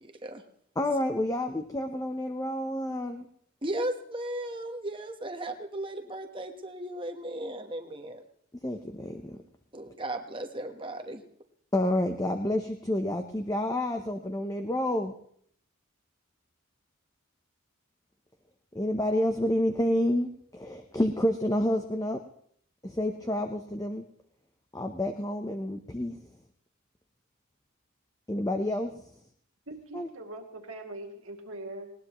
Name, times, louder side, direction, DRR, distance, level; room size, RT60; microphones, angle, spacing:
voice 1, 0.0-0.4 3.6-8.2 9.7-11.2, right 1 dB, 25° right, 5 dB, 1.2 m, -36 dB
voice 2, 0.8-3.3 8.6-9.4 11.7-15.1 18.7-22.2 22.8-24.0 24.7-26.2 28.3-29.1 29.9-30.1, left 1 dB, 15° left, 5 dB, 0.7 m, -29 dB
voice 3, 29.7-31.9, right 2 dB, 70° right, 3 dB, 2.3 m, -42 dB
20.0 x 18.5 x 3.1 m, 0.64 s
head